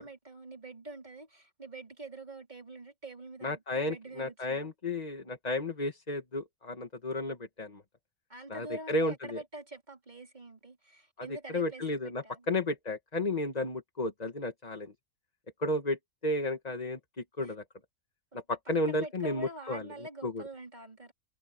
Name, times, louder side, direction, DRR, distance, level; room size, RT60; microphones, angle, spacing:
voice 1, 0.0-4.7 8.3-11.9 12.2-12.5 17.4-17.5 18.3-18.4 18.9-21.1, right 2 dB, 30° right, 3.9 m, -45 dB
voice 2, 3.4-7.8 8.5-9.4 11.2-14.9 15.6-17.0 17.4-17.6 18.5-19.9 20.2-20.4, left 2 dB, 25° left, 1.8 m, -33 dB
omnidirectional pair, 1.5 m